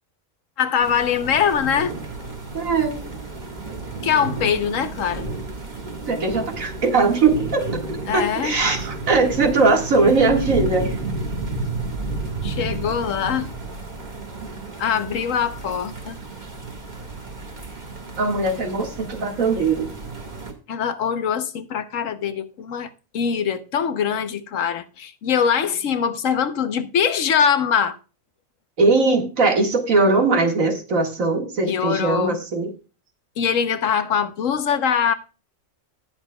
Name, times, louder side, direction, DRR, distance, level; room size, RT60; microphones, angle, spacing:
voice 1, 0.6-1.9 4.0-5.3 8.1-8.6 12.4-13.5 14.8-16.2 20.7-22.9 23.1-28.0 31.7-32.4 33.4-35.1, left 7 dB, 75° left, 1.2 m, -22 dB
sound 1, 0.8-20.5, right 3 dB, 35° right, 1.7 m, -32 dB
voice 2, 2.5-3.0 6.1-7.6 8.1-10.9 14.4-14.6 18.2-19.9 28.8-32.7, right 3 dB, 80° right, 2.3 m, -20 dB
18.0 x 7.2 x 2.3 m
omnidirectional pair, 1.4 m